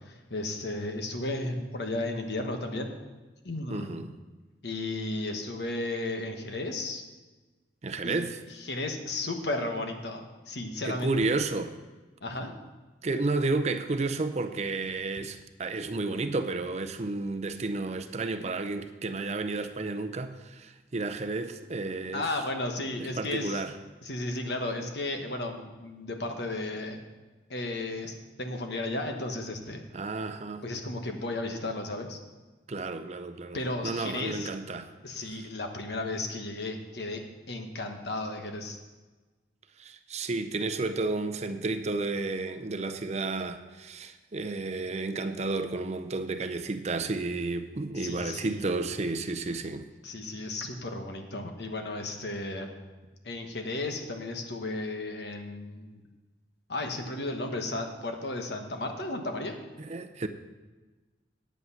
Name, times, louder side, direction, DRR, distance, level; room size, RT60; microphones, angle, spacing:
voice 1, 0.0-2.9 3.4-4.0 4.6-7.0 8.0-8.2 8.6-11.4 12.2-12.5 22.1-23.6 24.0-27.0 27.5-29.8 30.6-32.2 33.5-34.5 35.0-37.2 37.5-38.8 47.9-48.7 50.0-52.7 53.2-56.0 56.7-59.6, left 2 dB, 65° left, 1.2 m, -34 dB
voice 2, 3.7-4.1 7.8-8.4 10.8-11.7 13.0-22.3 23.0-23.7 29.9-30.6 32.7-34.9 35.2-35.5 39.8-49.9 59.8-60.3, right 3 dB, 40° right, 0.5 m, -32 dB
9.2 x 8.3 x 5.6 m
head